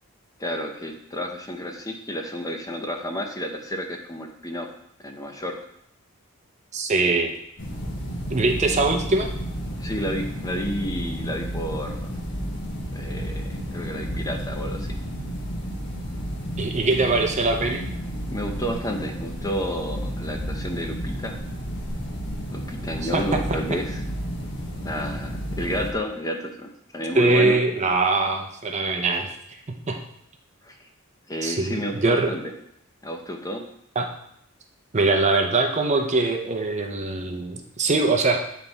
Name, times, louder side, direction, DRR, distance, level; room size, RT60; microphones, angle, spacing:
voice 1, 0.4-4.7 5.0-5.6 9.8-12.1 12.9-15.0 18.3-21.4 22.5-24.0 24.8-27.6 30.6-30.8 31.3-32.4 33.0-33.6, equal, 15° left, 3 dB, 0.6 m, -31 dB
voice 2, 6.7-7.3 8.3-9.3 16.6-17.8 23.0-23.2 27.1-29.3 29.7-30.0 31.4-32.3 34.0-34.1 34.9-38.4, right 3 dB, 35° right, 3 dB, 0.7 m, -22 dB
sound 1, 7.6-25.9, equal, 55° left, 1.2 m, -32 dB
8.7 x 3.5 x 4.0 m, 0.73 s
head